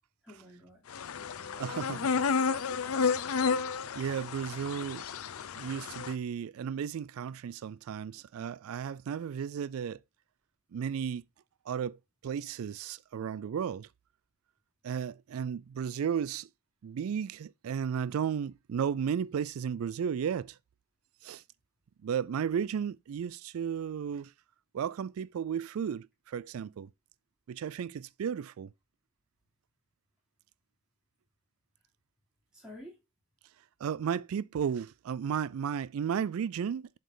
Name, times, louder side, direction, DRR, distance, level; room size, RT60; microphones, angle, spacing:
voice 1, 0.2-0.8 1.2-2.2 32.5-33.0, left 1 dB, 5° right, 3.6 m, -51 dB
sound 1, 0.9-6.1, left 5 dB, 80° left, 0.6 m, -31 dB
voice 2, 1.6-2.1 3.9-5.0 5.5-10.0 10.7-11.2 11.7-12.0 12.2-13.9 14.8-16.5 16.8-20.6 21.2-21.4 22.0-24.3 24.7-26.9 27.5-28.7 33.8-37.0, right 7 dB, 75° right, 0.3 m, -34 dB
7.7 x 5.2 x 3.9 m
head